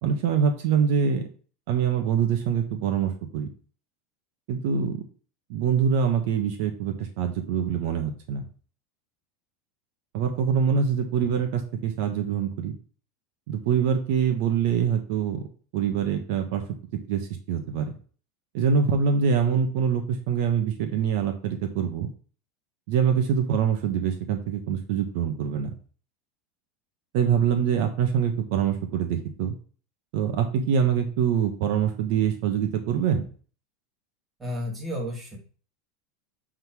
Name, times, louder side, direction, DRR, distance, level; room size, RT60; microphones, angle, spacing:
voice 1, 0.0-1.2 1.7-3.5 4.5-5.0 5.5-8.4 10.1-12.7 13.5-15.5 15.7-16.6 17.1-17.9 18.5-22.1 22.9-25.7 27.1-29.5 30.1-33.3, right 7 dB, 65° right, 5 dB, 1.2 m, -24 dB
voice 2, 34.4-35.4, left 1 dB, 15° right, -1 dB, 2.6 m, -32 dB
7.9 x 3.8 x 4.7 m, 0.41 s
supercardioid pair, 130°, 0 cm